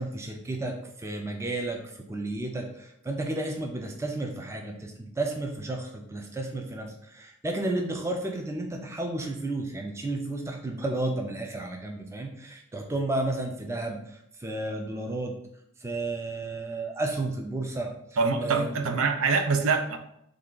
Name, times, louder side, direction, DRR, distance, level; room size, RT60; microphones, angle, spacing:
voice 1, 0.0-15.4 15.8-17.9 18.4-18.8, right 2 dB, 15° right, 2 dB, 0.3 m, -32 dB
voice 2, 18.2-20.0, right 4 dB, 85° right, 7 dB, 0.5 m, -25 dB
3.3 x 2.4 x 3.7 m, 0.75 s
head